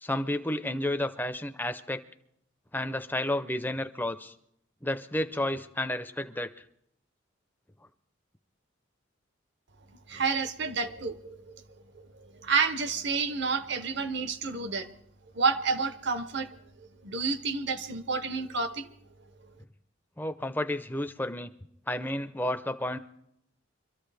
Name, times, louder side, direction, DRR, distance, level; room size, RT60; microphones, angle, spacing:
voice 1, 0.0-2.0 2.7-4.3 4.8-6.5 20.2-21.5 21.9-23.0, left 1 dB, 10° left, 9 dB, 0.6 m, -31 dB
voice 2, 10.1-11.6 12.4-14.9 15.3-16.5 17.0-18.9, right 4 dB, 60° right, 11 dB, 0.9 m, -29 dB
24.0 x 13.5 x 3.4 m, 0.71 s
head